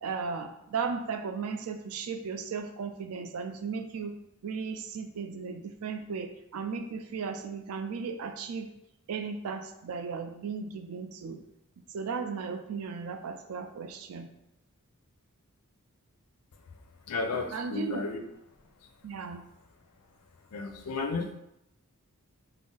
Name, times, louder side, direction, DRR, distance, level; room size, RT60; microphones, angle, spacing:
voice 1, 0.0-4.2 4.4-8.7 9.1-11.4 11.9-14.3 17.5-18.0 19.0-19.4, right 5 dB, 75° right, 7 dB, 0.4 m, -36 dB
voice 2, 17.1-18.2 20.5-21.3, left 3 dB, 90° left, 5 dB, 0.4 m, -33 dB
2.5 x 2.0 x 3.7 m, 0.83 s
head